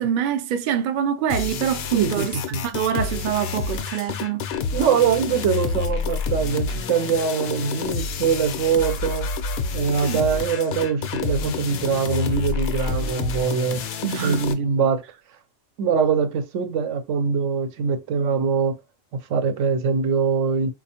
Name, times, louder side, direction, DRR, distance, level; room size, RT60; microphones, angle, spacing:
voice 1, 0.0-2.4 2.6-4.4 10.0-10.2 14.0-14.6, right 9 dB, 60° right, 0.5 m, -25 dB
sound 1, 1.3-14.5, left 5 dB, 65° left, 0.7 m, -28 dB
voice 2, 1.9-2.3 2.5-2.6 4.7-9.3 9.7-13.8 14.2-15.0 15.8-18.8 19.3-20.7, right 6 dB, 80° right, 1.0 m, -23 dB
4.1 x 2.4 x 2.8 m
omnidirectional pair, 1.3 m